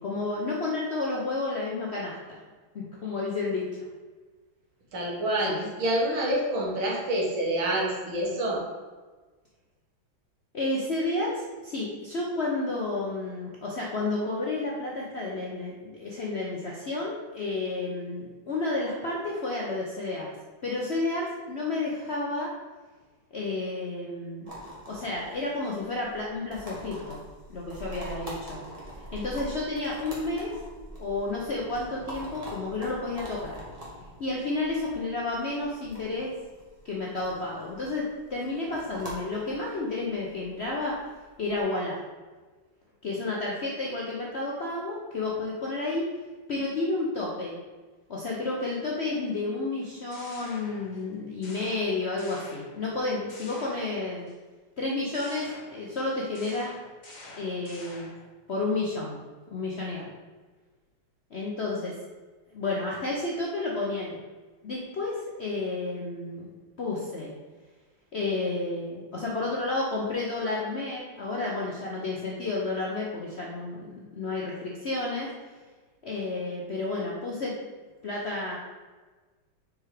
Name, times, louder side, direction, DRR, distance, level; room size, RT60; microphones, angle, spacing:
voice 1, 0.0-2.4 2.7-3.7 5.5-5.7 10.5-20.3 20.6-22.5 23.3-24.5 24.9-27.2 27.5-28.6 29.1-30.5 31.0-33.6 34.2-36.3 36.8-41.0 41.4-42.0 43.0-46.1 46.5-47.6 48.1-54.3 54.8-56.7 57.3-58.2 58.5-59.2 59.5-60.1 61.3-61.9 62.5-64.2 64.6-66.5 66.8-67.3 68.1-75.3 76.0-77.5 78.0-78.6, left 2 dB, 60° left, -3 dB, 0.7 m, -31 dB
voice 2, 4.9-8.6, right 1 dB, 85° right, -4 dB, 2.3 m, -27 dB
sound 1, 24.5-41.6, right 1 dB, 20° right, 1.4 m, -44 dB
sound 2, 49.8-51.1 51.4-53.0 53.3-54.3 55.1-58.3, left 2 dB, 30° left, 0.9 m, -47 dB
4.9 x 4.4 x 4.8 m, 1.3 s
omnidirectional pair, 2.2 m